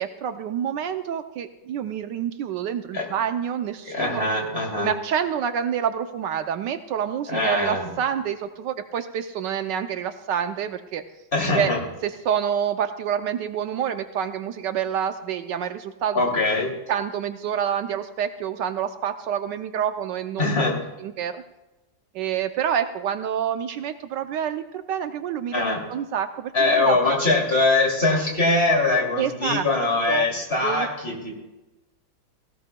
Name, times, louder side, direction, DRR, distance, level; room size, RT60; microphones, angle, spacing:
voice 1, 0.0-4.2 4.8-11.0 11.5-11.7 12.0-16.2 16.9-20.5 21.0-21.4 22.1-27.2 29.2-29.7 30.1-30.3 30.6-30.9, right 8 dB, 75° right, 9 dB, 1.2 m, -27 dB
voice 2, 3.8-4.9 7.3-7.9 11.3-11.8 16.1-16.7 20.4-20.8 25.5-25.8 26.5-31.3, left 2 dB, 30° left, -1 dB, 2.9 m, -22 dB
18.0 x 16.5 x 2.2 m, 1.0 s
omnidirectional pair, 2.0 m